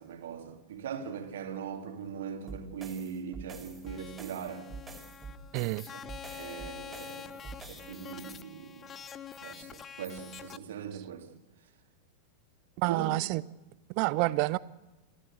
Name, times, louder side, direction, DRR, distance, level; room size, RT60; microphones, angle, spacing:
voice 1, 0.0-4.7 6.3-9.0 9.4-11.3 12.9-13.2, right 7 dB, 60° right, 2.7 m, -40 dB
sound 1, 2.5-8.0, right 4 dB, 15° right, 4.5 m, -46 dB
sound 2, 3.9-10.6, left 8 dB, 25° left, 0.9 m, -46 dB
voice 2, 5.5-5.9 12.8-13.4 13.9-14.6, right 22 dB, 45° right, 0.7 m, -28 dB
27.5 x 15.5 x 8.1 m
figure-of-eight pair, 90°, 0 cm